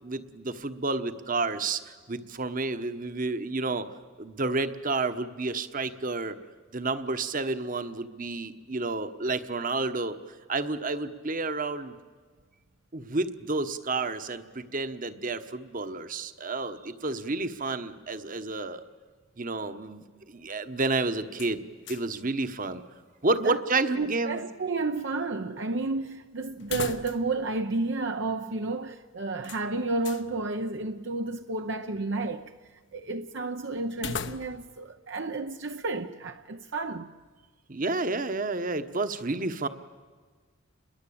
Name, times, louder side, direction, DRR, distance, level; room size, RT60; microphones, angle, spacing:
voice 1, 0.0-3.9 4.2-6.4 6.7-10.2 10.5-12.0 12.9-18.8 19.4-21.6 21.9-22.8 23.2-24.4 37.7-39.7, right 3 dB, 40° right, 1.2 m, -30 dB
sound 1, 21.3-22.2 22.5-22.6 26.6-27.4 27.7-27.8 29.4-30.3 33.9-34.8, left 5 dB, 60° left, 1.0 m, -38 dB
voice 2, 24.0-37.1, right 3 dB, 60° right, 0.8 m, -31 dB
29.5 x 22.0 x 8.7 m
head